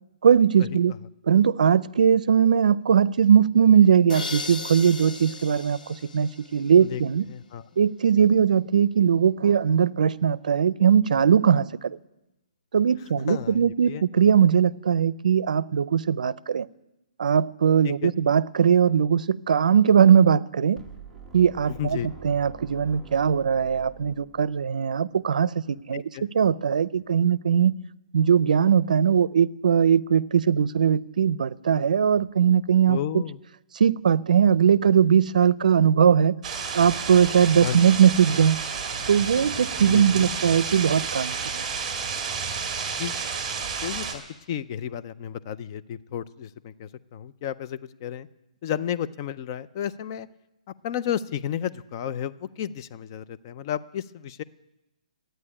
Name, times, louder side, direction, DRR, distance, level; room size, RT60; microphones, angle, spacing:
voice 1, 0.2-0.9 1.3-7.3 7.8-12.0 12.7-16.7 17.2-20.8 21.3-22.0 22.2-26.0 26.3-27.7 28.1-33.2 33.7-36.3 36.7-38.6 39.1-41.6, right 8 dB, 75° right, 0.5 m, -20 dB
sound 1, 4.1-6.9, left 4 dB, 85° left, 0.9 m, -36 dB
voice 2, 7.3-7.6 13.3-14.0 17.8-18.2 21.8-22.1 25.9-26.3 32.9-33.4 37.6-37.8 39.9-40.4 43.0-43.2 43.8-44.2 44.5-48.3 48.6-50.3 50.8-54.4, left 9 dB, 30° left, 0.4 m, -32 dB
sound 2, 20.8-24.8, right 5 dB, ahead, 1.0 m, -46 dB
sound 3, 36.4-44.1, right 6 dB, 15° right, 2.0 m, -31 dB
13.0 x 9.2 x 9.8 m
hypercardioid pair, 165°, 4 cm